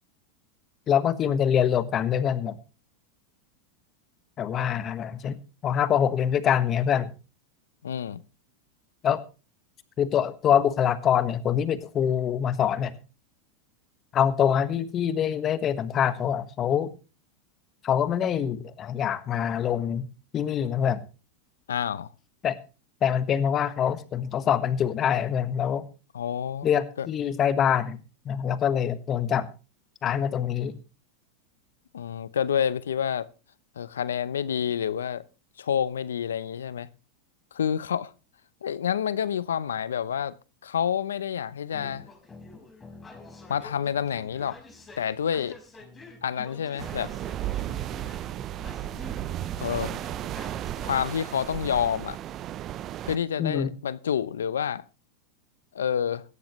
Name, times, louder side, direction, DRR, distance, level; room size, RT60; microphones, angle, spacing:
voice 1, 0.9-2.6 4.4-7.1 9.0-9.2 10.0-12.9 14.1-16.9 17.8-20.1 20.3-21.0 22.4-22.6 23.0-25.9 26.6-28.0 28.2-29.5 30.0-30.8 53.4-53.7, left 9 dB, 35° left, 1.4 m, -25 dB
voice 2, 7.8-8.2 21.7-22.1 26.1-26.7 27.0-27.1 31.9-33.3 33.8-35.2 35.6-36.9 37.5-38.1 38.6-40.3 40.6-42.1 43.5-44.6 45.0-45.6 46.2-47.1 49.6-50.2 50.8-52.2 53.0-54.8 55.7-56.2, left 8 dB, 85° left, 0.7 m, -28 dB
sound 1, 41.7-51.0, left 3 dB, 15° left, 5.1 m, -48 dB
sound 2, 46.8-53.2, right 12 dB, 40° right, 0.6 m, -34 dB
17.5 x 13.0 x 3.2 m
hypercardioid pair, 105°, 0 cm